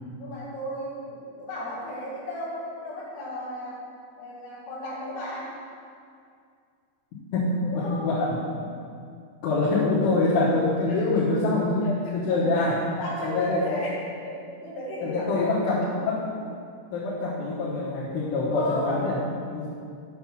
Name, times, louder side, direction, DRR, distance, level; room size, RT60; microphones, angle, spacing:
voice 1, 0.2-3.8 4.2-5.5 7.6-8.1 10.9-11.0 11.8-15.9 17.4-17.6 18.5-19.2, left 1 dB, 65° left, -5 dB, 3.3 m, -35 dB
voice 2, 7.3-8.4 9.4-11.9 12.1-12.8 13.2-13.7 15.0-16.3 16.9-19.2 19.4-19.7, left 2 dB, 85° left, -8 dB, 3.7 m, -25 dB
8.8 x 5.9 x 6.1 m, 2.3 s
omnidirectional pair, 5.4 m